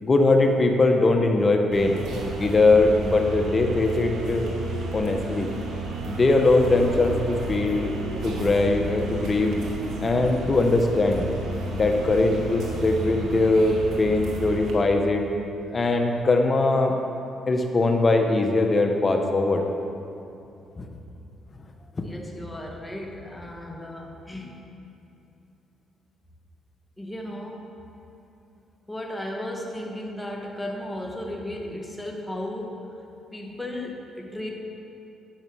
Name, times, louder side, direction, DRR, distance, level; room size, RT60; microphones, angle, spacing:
voice 1, 0.0-2.0 2.4-4.4 4.9-5.5 6.1-7.9 8.2-9.6 10.0-11.3 11.7-15.2 15.7-17.0 17.5-19.7 20.8-20.9 22.0-22.1, left 2 dB, 35° left, 4 dB, 1.0 m, -21 dB
sound 1, 1.7-14.7, right 2 dB, 80° right, 1.7 m, -32 dB
voice 2, 22.0-24.6 27.0-27.7 28.9-33.0 33.3-34.5, left 1 dB, 10° left, 0 dB, 1.6 m, -35 dB
10.5 x 6.7 x 6.1 m, 2.8 s
cardioid pair, 90°, 0 cm